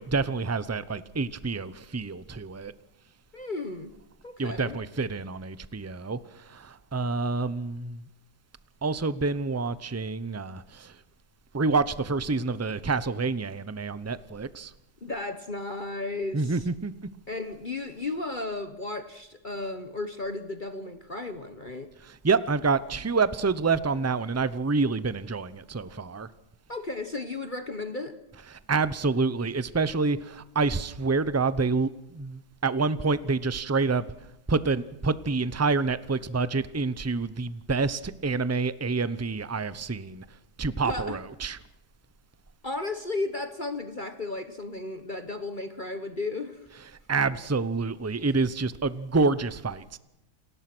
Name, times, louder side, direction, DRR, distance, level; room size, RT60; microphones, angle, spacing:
voice 1, 0.0-2.7 4.4-8.0 8.8-11.0 11.5-14.7 16.3-16.9 22.0-26.3 28.5-34.0 34.5-40.3 40.6-41.6 47.1-50.0, right 4 dB, 20° right, 0.4 m, -27 dB
voice 2, 3.3-3.9 4.2-4.8 15.0-16.6 17.3-21.9 26.7-28.2 40.8-41.2 42.6-46.7, left 2 dB, 30° left, 1.3 m, -34 dB
29.0 x 19.5 x 6.2 m
omnidirectional pair, 1.8 m